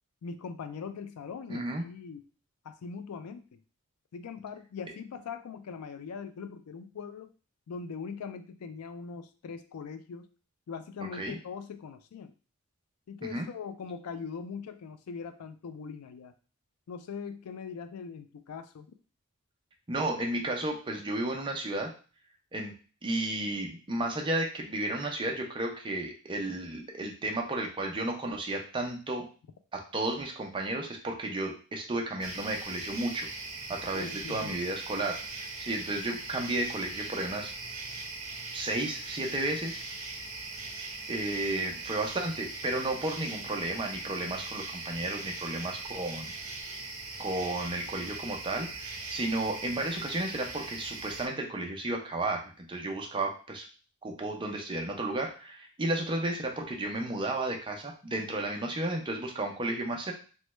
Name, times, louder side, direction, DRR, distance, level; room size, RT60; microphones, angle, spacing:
voice 1, 0.2-2.2 2.6-3.6 4.1-7.3 7.7-10.3 10.7-12.3 13.1-16.4 16.9-18.9 33.9-34.6, left 5 dB, 85° left, 10 dB, 0.4 m, -41 dB
voice 2, 1.5-1.8 11.1-11.4 13.2-13.5 19.9-21.9 22.5-22.7 23.0-29.3 29.7-33.3 33.7-37.5 38.5-39.9 41.1-46.3 47.2-53.6 54.0-60.1, right 2 dB, 20° right, 1 dB, 0.5 m, -33 dB
sound 1, 32.2-51.3, right 3 dB, 70° right, 0.9 m, -40 dB
3.1 x 2.2 x 3.1 m, 0.37 s
head